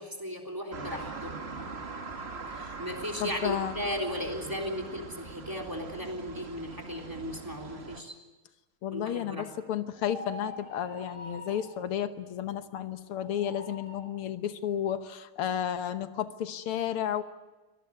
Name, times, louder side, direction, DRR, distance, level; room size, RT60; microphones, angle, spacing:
voice 1, 0.0-1.4 2.8-8.2 8.9-9.5, equal, 10° right, 2 dB, 3.3 m, -36 dB
sound 1, 0.7-8.0, right 4 dB, 30° right, 1.7 m, -42 dB
voice 2, 3.2-3.9 8.8-17.2, left 10 dB, 90° left, 10 dB, 2.0 m, -32 dB
sound 2, 9.9-11.8 13.1-14.1, equal, 65° left, 8.5 m, -45 dB
24.0 x 18.5 x 9.7 m, 1.2 s
omnidirectional pair, 2.3 m